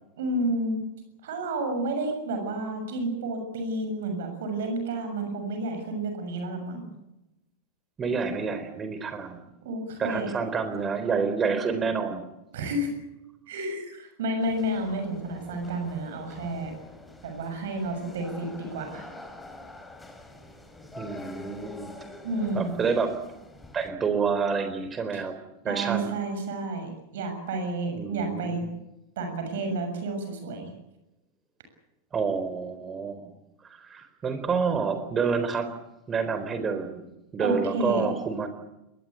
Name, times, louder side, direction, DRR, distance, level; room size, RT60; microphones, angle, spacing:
voice 1, 0.2-0.8 1.2-6.9 9.6-10.3 12.5-12.9 13.5-16.7 17.2-19.0 22.2-22.7 25.1-25.2 25.6-28.6 29.2-30.7 37.4-38.1, right 2 dB, 55° right, 5 dB, 6.8 m, -30 dB
voice 2, 8.0-9.4 10.0-12.2 21.0-21.9 22.5-23.1 23.7-25.4 25.6-26.1 28.0-28.7 32.1-33.3 33.6-35.7 36.1-37.1 37.3-38.5, right 5 dB, 20° right, 9 dB, 4.0 m, -28 dB
sound 1, 14.4-23.9, left 1 dB, 10° left, 3.7 m, -46 dB
22.5 x 20.0 x 8.5 m, 0.92 s
figure-of-eight pair, 90°, 0 cm